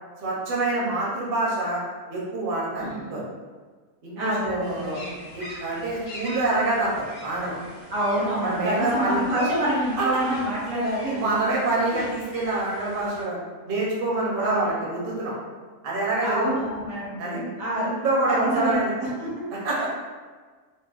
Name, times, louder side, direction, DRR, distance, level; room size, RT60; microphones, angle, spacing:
voice 1, 0.2-1.8 2.1-3.2 4.0-5.0 5.3-7.6 8.4-9.2 10.0-10.1 11.1-13.4 13.7-15.3 15.8-16.5 17.2-17.4 17.8-18.9 19.6-19.9, right 2 dB, 50° right, -5 dB, 0.8 m, -26 dB
voice 2, 2.8-3.1 4.2-5.1 7.9-11.3 11.9-12.0 14.4-14.7 16.2-17.9 18.3-18.8 19.2-19.4 19.8-19.9, right 1 dB, 75° right, -6 dB, 1.4 m, -27 dB
sound 1, 4.6-13.2, equal, 35° left, 0.9 m, -43 dB
3.9 x 2.2 x 2.3 m, 1.4 s
omnidirectional pair, 1.5 m